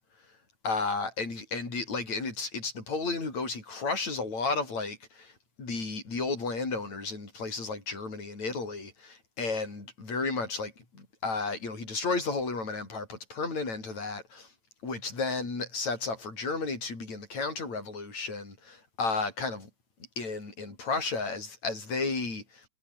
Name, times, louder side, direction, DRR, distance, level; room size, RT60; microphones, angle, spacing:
voice 1, 0.6-5.3 5.6-10.7 11.2-14.5 14.8-19.7 20.2-22.7, left 3 dB, 70° left, 8.8 m, -33 dB
omnidirectional pair, 3.3 m